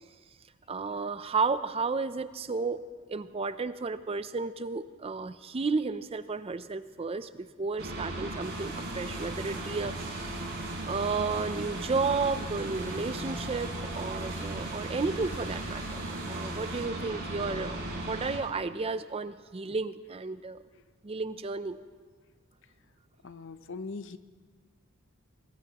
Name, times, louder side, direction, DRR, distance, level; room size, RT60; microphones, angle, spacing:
voice 1, 0.7-2.8 3.1-9.9 10.8-17.8 18.1-20.6 21.0-21.8, right 4 dB, 25° right, 13 dB, 0.4 m, -32 dB
sound 1, 7.8-18.4, right 1 dB, 50° right, 4.6 m, -36 dB
sound 2, 8.4-16.9, right 5 dB, 65° right, 6.4 m, -50 dB
voice 2, 23.2-24.2, left 3 dB, 55° left, 12 dB, 0.7 m, -40 dB
23.5 x 20.0 x 2.9 m, 1.5 s
head